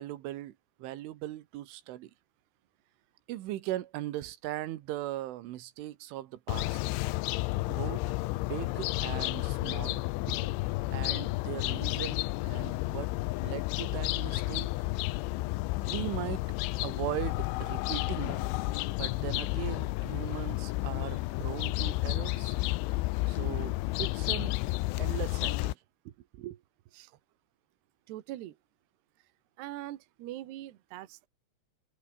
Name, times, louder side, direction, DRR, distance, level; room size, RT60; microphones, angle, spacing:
voice 1, 0.0-2.1 3.3-6.8 7.7-8.0 8.5-10.0 10.3-10.5 10.9-13.1 13.4-14.7 15.8-16.5 16.8-18.5 19.0-22.6 23.3-24.6 25.0-25.8 26.3-26.6, right 14 dB, 85° right, 3.9 m, -39 dB
sound 1, 6.5-25.7, left 21 dB, 85° left, 3.1 m, -31 dB
voice 2, 28.1-28.6 29.6-31.3, right 14 dB, 70° right, 3.3 m, -42 dB
omnidirectional pair, 5.5 m